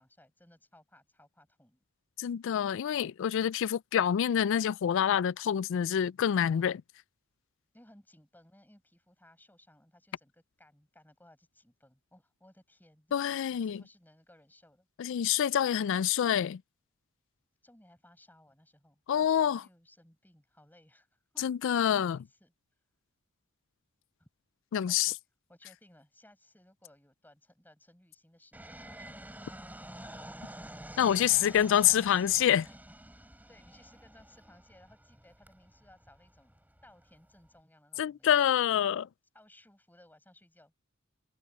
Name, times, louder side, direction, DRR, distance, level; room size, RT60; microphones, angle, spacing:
voice 1, 0.0-1.8 7.7-14.9 17.6-22.5 24.2-24.3 24.8-25.2 25.5-29.6 30.0-30.3 32.7-32.8 33.5-38.5 39.3-40.7, left 1 dB, 10° left, 7.4 m, -61 dB
voice 2, 2.2-6.8 13.1-13.8 15.0-16.6 19.1-19.6 21.4-22.2 24.7-25.1 31.0-32.7 38.0-39.1, left 9 dB, 60° left, 0.3 m, -27 dB
Fixed-wing aircraft airplane, 28.5-37.6, right 1 dB, 10° right, 6.7 m, -49 dB
head